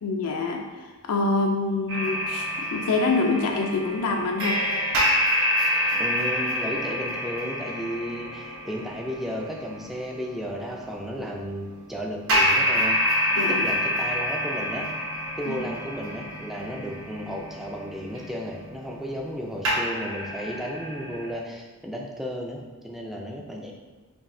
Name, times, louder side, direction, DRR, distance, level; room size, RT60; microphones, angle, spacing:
voice 1, 0.0-4.6 13.4-13.7 15.5-15.6, left 3 dB, 75° left, 1 dB, 0.4 m, -26 dB
sound 1, 1.9-10.6 12.3-19.4 19.6-21.3, equal, 60° right, 0.9 m, -27 dB
voice 2, 5.9-13.0 13.5-14.9 15.4-23.7, equal, ahead, -1 dB, 0.3 m, -34 dB
5.1 x 2.7 x 2.6 m, 1.3 s
head